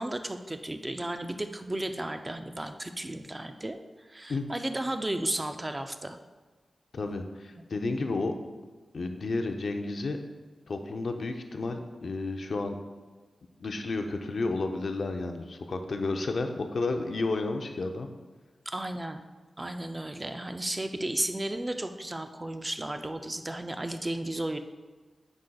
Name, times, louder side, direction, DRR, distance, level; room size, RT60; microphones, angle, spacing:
voice 1, 0.0-3.8 4.1-6.2 18.7-19.2 19.6-24.6, right 1 dB, 20° right, 7 dB, 0.4 m, -34 dB
voice 2, 6.9-8.3 8.9-10.2 10.7-12.8 13.6-18.1, left 3 dB, 65° left, 5 dB, 0.5 m, -31 dB
9.6 x 4.9 x 2.3 m, 1.3 s
wide cardioid pair, 110°, 0 cm